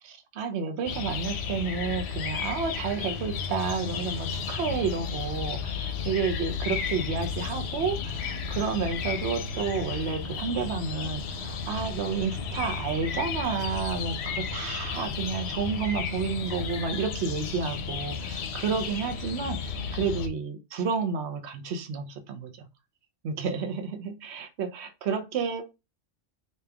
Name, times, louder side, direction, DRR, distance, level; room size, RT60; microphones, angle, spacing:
voice 1, 0.0-22.7 23.2-25.6, right 5 dB, 65° right, 6 dB, 1.0 m, -31 dB
sound 1, 0.9-20.3, left 6 dB, 65° left, 0.8 m, -33 dB
3.1 x 2.9 x 3.4 m, 0.25 s
omnidirectional pair, 1.3 m